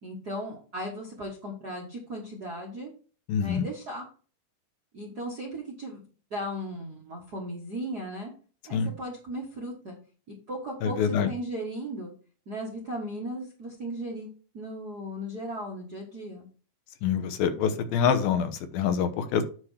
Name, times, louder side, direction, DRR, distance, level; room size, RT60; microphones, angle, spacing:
voice 1, 0.0-2.9 3.4-4.0 4.9-6.0 6.3-8.3 8.7-10.0 10.5-12.1 12.5-14.3 14.5-16.5, equal, 50° right, -2 dB, 1.2 m, -36 dB
voice 2, 3.3-3.7 8.7-8.9 10.8-11.3 17.0-19.4, left 7 dB, 85° left, 8 dB, 2.7 m, -26 dB
9.6 x 3.3 x 6.3 m, 0.38 s
omnidirectional pair, 4.2 m